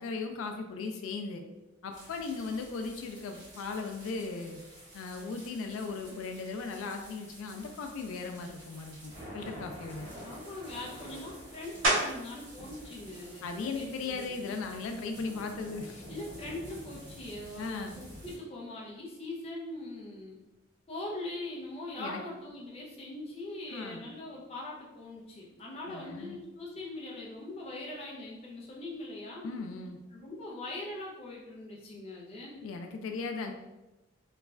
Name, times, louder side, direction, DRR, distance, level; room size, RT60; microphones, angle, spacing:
voice 1, 0.0-1.4 1.8-4.6 4.9-10.1 13.4-16.0 17.6-17.9 22.0-22.2 23.7-24.0 25.9-26.4 29.4-30.0 32.5-33.5, left 4 dB, 90° left, 5 dB, 0.3 m, -37 dB
sound 1, 1.9-18.4, right 1 dB, 60° right, 1.5 m, -49 dB
voice 2, 10.2-14.7 16.1-20.4 20.9-29.5 30.1-32.5, left 2 dB, 30° left, -3 dB, 0.5 m, -42 dB
sound 2, 11.8-12.4 13.0-17.4 17.9-23.1 23.4-29.0, right 1 dB, 90° right, 1.0 m, -39 dB
3.0 x 2.3 x 2.3 m, 1.0 s
head